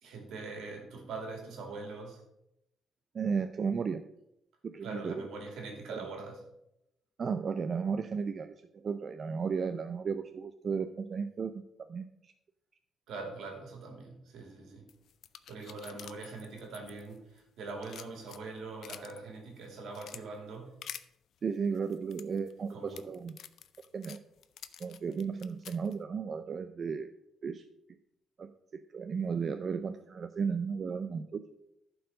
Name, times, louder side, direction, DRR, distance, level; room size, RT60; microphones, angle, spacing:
voice 1, 0.0-2.2 4.8-6.4 13.1-14.9 15.5-20.8 22.7-23.1, right 3 dB, 80° right, 2 dB, 2.4 m, -43 dB
voice 2, 3.1-4.0 4.6-5.2 5.9-6.0 7.2-12.1 21.4-23.3 23.9-24.2 24.8-27.1 27.4-27.6 28.4-31.5, right 5 dB, 45° right, 9 dB, 0.4 m, -34 dB
sound 1, 14.9-17.4 17.7-19.2 19.6-20.2 20.8-21.0 21.7-25.9, left 9 dB, 70° left, 0.5 m, -48 dB
11.0 x 4.7 x 5.2 m, 0.83 s
cardioid pair, 90°, 0 cm